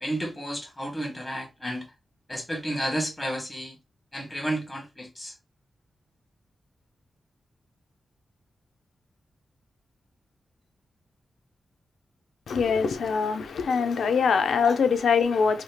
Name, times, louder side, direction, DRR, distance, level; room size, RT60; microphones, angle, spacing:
voice 1, 0.0-1.9 2.3-3.7 4.1-5.3 14.6-14.7, right 1 dB, 10° left, 1.0 m, -31 dB
voice 2, 12.5-15.6, left 5 dB, 85° left, 0.6 m, -23 dB
3.4 x 2.8 x 2.8 m
wide cardioid pair, 165°, 0 cm